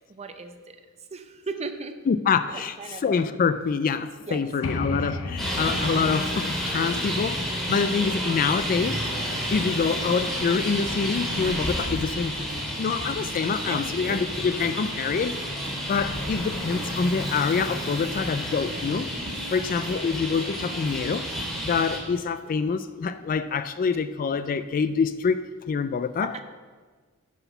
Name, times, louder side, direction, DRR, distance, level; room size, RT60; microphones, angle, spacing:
voice 1, 0.1-0.8 1.1-2.0 2.5-3.0 4.3-4.4 9.5-9.7 13.6-14.2 19.8-20.0 26.2-26.4, right 4 dB, 30° right, 0.6 m, -37 dB
voice 2, 2.1-9.0 9.5-12.5 12.8-15.4 15.9-19.1 19.5-21.3 21.6-26.4, left 5 dB, 40° left, 0.3 m, -26 dB
sound 1, 4.6-8.3, left 2 dB, 65° left, 0.7 m, -35 dB
Traffic noise roadway noise, 5.4-22.0, equal, ahead, 2.2 m, -31 dB
sound 2, 8.7-21.9, right 1 dB, 55° right, 1.5 m, -40 dB
9.9 x 6.0 x 5.6 m
head